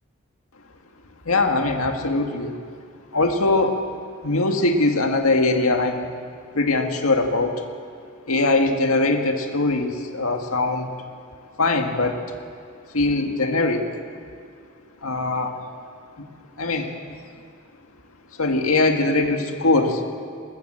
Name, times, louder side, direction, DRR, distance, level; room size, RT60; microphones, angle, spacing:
voice 1, 1.3-2.6 3.1-3.8 4.2-6.1 6.5-7.5 8.3-10.9 11.6-12.2 12.9-13.9 15.0-15.5 16.6-16.9 18.4-20.0, left 2 dB, 85° left, 4 dB, 1.9 m, -21 dB
20.5 x 20.0 x 7.6 m, 2.4 s
head